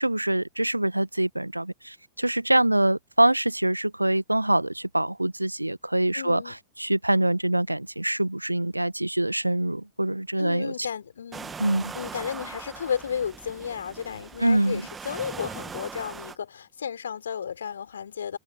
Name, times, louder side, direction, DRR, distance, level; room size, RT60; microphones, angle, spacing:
voice 1, 0.0-10.7 11.6-11.9 14.4-14.8, right 1 dB, 85° right, 1.4 m, -24 dB
voice 2, 6.1-6.5 10.4-11.5 11.9-18.4, left 7 dB, 70° left, 3.5 m, -33 dB
sound 1, 11.3-16.4, right 5 dB, 15° right, 1.7 m, -40 dB
figure-of-eight pair, 90°, 0 cm